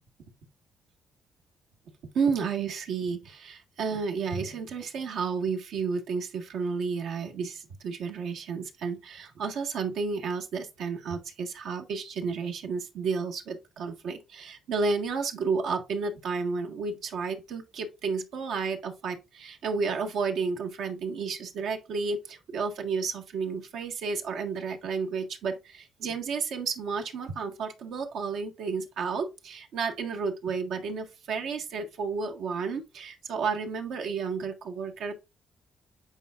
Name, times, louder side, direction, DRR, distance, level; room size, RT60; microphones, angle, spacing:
voice 1, 2.1-35.1, right 5 dB, 80° right, 1.5 m, -32 dB
8.9 x 4.6 x 2.5 m
cardioid pair, 90°, 0 cm